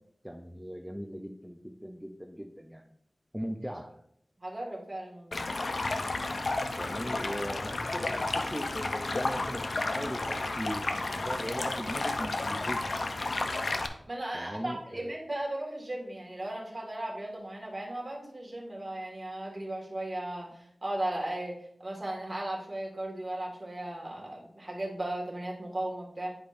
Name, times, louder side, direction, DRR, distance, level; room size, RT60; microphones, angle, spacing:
voice 1, 0.2-2.9 3.3-3.9 6.8-9.6 9.9-12.9 14.3-15.1, equal, 5° right, 2 dB, 0.5 m, -39 dB
voice 2, 4.4-5.5 14.1-26.3, right 1 dB, 35° right, -2 dB, 1.8 m, -36 dB
Stream, 5.3-13.9, left 2 dB, 65° left, 0.6 m, -32 dB
9.7 x 5.1 x 2.6 m, 0.72 s
wide cardioid pair, 75°, 0 cm